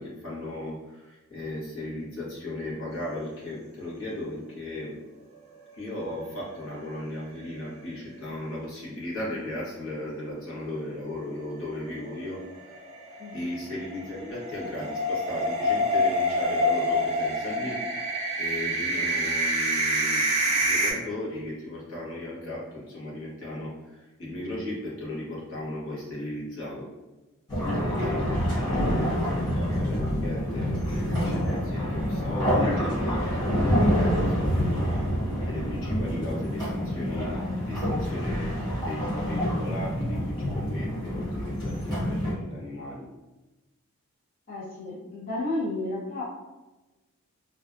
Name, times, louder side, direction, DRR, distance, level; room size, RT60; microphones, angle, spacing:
voice 1, 0.0-5.0 5.7-12.8 13.3-26.9 27.8-35.1 35.4-43.1, left 1 dB, 65° left, -6 dB, 1.0 m, -36 dB
sound 1, 6.0-6.9 7.2-7.3 7.6-7.7 11.9-20.9, equal, 30° right, 0.4 m, -27 dB
sound 2, 27.5-42.3, equal, 20° left, 1.1 m, -27 dB
voice 2, 28.5-29.2 44.5-46.2, left 2 dB, 40° left, -9 dB, 0.5 m, -33 dB
2.5 x 2.2 x 2.4 m, 1.1 s
head